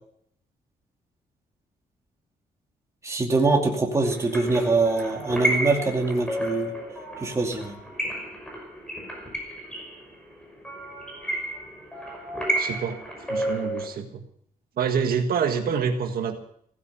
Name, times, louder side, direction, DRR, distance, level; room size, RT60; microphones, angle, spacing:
voice 1, 3.0-6.7 7.2-7.7, right 3 dB, 20° right, 1 dB, 2.5 m, -23 dB
sound 1, 4.1-13.8, right 1 dB, 5° left, 5.7 m, -31 dB
voice 2, 12.6-14.2 14.8-16.4, right 6 dB, 70° right, 5 dB, 1.7 m, -27 dB
16.5 x 15.0 x 5.8 m, 0.66 s
wide cardioid pair, 165°, 16 cm